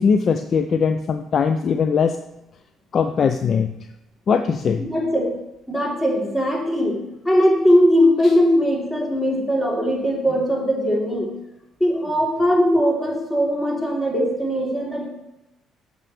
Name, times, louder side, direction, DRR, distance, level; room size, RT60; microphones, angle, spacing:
voice 1, 0.0-2.2 2.9-3.7 4.3-4.9, left 6 dB, 45° left, 8 dB, 0.4 m, -20 dB
voice 2, 4.8-5.2 5.7-7.0 7.2-11.3 11.8-15.1, equal, 15° left, -2 dB, 3.1 m, -20 dB
13.0 x 5.3 x 3.2 m, 0.92 s
figure-of-eight pair, 45°, 0 cm